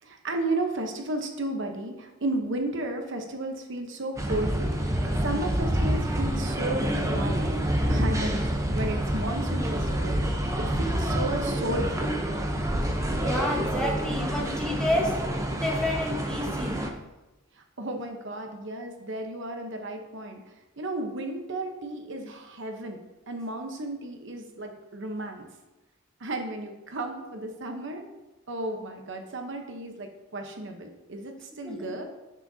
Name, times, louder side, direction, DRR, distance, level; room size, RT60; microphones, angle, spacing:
voice 1, 0.0-4.9 5.2-7.4 7.9-12.2 17.5-20.4 20.8-23.0 23.3-25.5 26.2-28.1 28.5-32.0, right 2 dB, 55° right, 4 dB, 0.9 m, -33 dB
sound 1, 4.2-16.9, right 1 dB, 15° right, 0.7 m, -27 dB
voice 2, 13.2-17.0 31.6-31.9, left 1 dB, 5° left, -3 dB, 1.2 m, -30 dB
9.7 x 7.3 x 2.7 m, 1.0 s
head